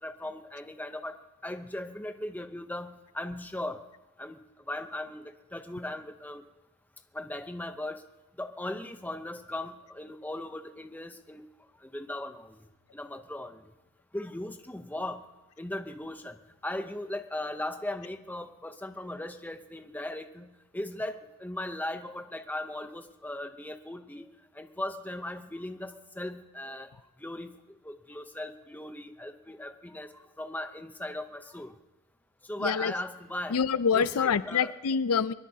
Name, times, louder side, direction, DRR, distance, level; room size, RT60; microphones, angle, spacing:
voice 1, 0.0-3.8 4.2-4.4 4.7-6.4 7.1-8.0 8.4-11.4 11.8-13.7 14.1-15.2 15.6-24.3 24.5-26.9 27.2-31.8 32.4-33.6 33.9-34.7, left 1 dB, 10° left, 7 dB, 0.7 m, -38 dB
voice 2, 32.6-32.9 33.5-35.3, left 6 dB, 80° left, 15 dB, 0.5 m, -26 dB
23.0 x 21.0 x 2.8 m, 1.0 s
head